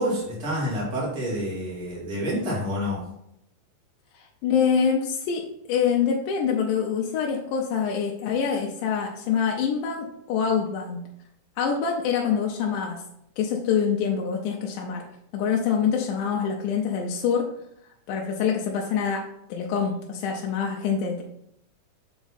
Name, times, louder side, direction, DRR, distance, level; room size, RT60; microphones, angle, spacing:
voice 1, 0.0-3.0, equal, 30° right, -6 dB, 2.5 m, -28 dB
voice 2, 4.1-11.0 11.6-13.0 13.4-15.0 15.3-17.5 18.1-19.2 19.5-21.2, left 7 dB, 80° left, 0 dB, 2.2 m, -25 dB
7.2 x 3.5 x 4.0 m, 0.76 s
omnidirectional pair, 3.7 m